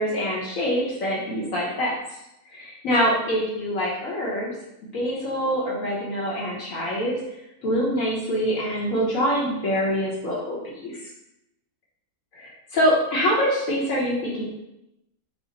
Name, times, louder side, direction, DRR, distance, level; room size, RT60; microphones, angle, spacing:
voice 1, 0.0-2.2 2.5-4.5 4.9-7.1 7.6-11.1 12.3-14.4, equal, 65° left, -6 dB, 1.2 m, -25 dB
4.9 x 2.0 x 3.8 m, 0.89 s
omnidirectional pair, 1.6 m